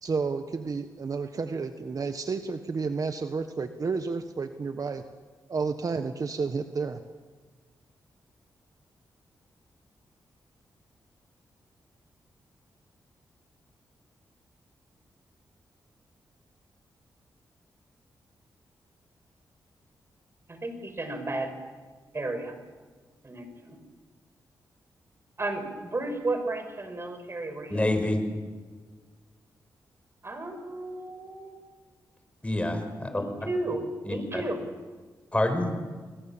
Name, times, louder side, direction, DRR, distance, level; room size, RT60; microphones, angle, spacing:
voice 1, 0.0-5.0 5.5-7.0, right 4 dB, 50° right, 8 dB, 1.4 m, -31 dB
voice 2, 20.5-21.5 22.1-22.5 23.2-23.8 25.4-27.9 30.2-31.6 33.1-34.6, right 2 dB, 35° right, 7 dB, 5.9 m, -33 dB
voice 3, 27.7-28.2 32.4-33.2 34.1-34.4 35.3-35.7, left 1 dB, 15° left, 7 dB, 5.6 m, -27 dB
29.0 x 22.0 x 7.4 m, 1.4 s
cardioid pair, 60°, 8 cm